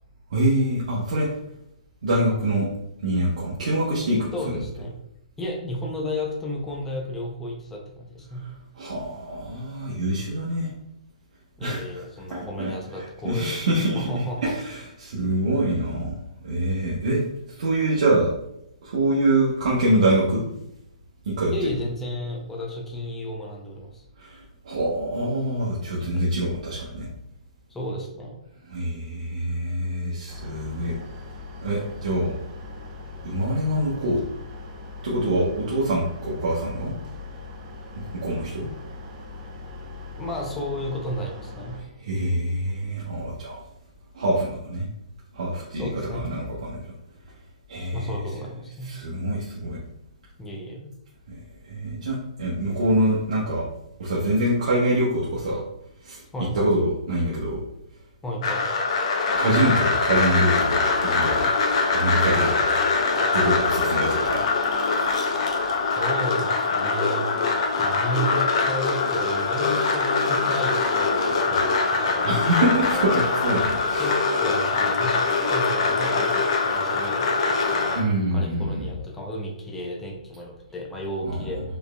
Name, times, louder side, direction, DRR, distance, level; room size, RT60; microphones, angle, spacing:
voice 1, 0.3-1.3 2.0-2.7 3.0-4.3 8.3-10.7 11.6-12.0 12.3-17.2 17.5-18.3 18.8-20.4 21.2-21.5 24.2-27.1 28.7-31.0 31.6-32.3 33.2-34.2 35.0-36.9 38.1-38.7 42.0-43.7 44.1-44.9 45.3-46.9 47.7-48.1 48.8-49.8 51.3-53.7 54.0-55.6 56.0-56.2 56.5-57.6 59.3-60.8 61.1-61.5 61.9-63.0 63.3-64.4 72.2-74.1 78.0-78.9 81.2-81.5, right 1 dB, 65° right, -6 dB, 1.0 m, -25 dB
voice 2, 4.3-4.9 5.4-8.5 11.6-14.5 21.5-24.0 27.7-28.4 40.2-41.8 45.8-46.3 47.9-48.9 50.4-50.9 56.3-56.7 58.2-58.7 66.0-67.5 67.8-73.1 74.0-78.0 78.3-81.6, equal, 5° left, -2 dB, 0.6 m, -33 dB
sound 1, 30.3-41.8, left 3 dB, 25° right, 0.7 m, -40 dB
sound 2, 58.4-78.0, left 4 dB, 45° left, 0.7 m, -23 dB
4.5 x 3.4 x 2.3 m, 0.80 s
hypercardioid pair, 155°, 4 cm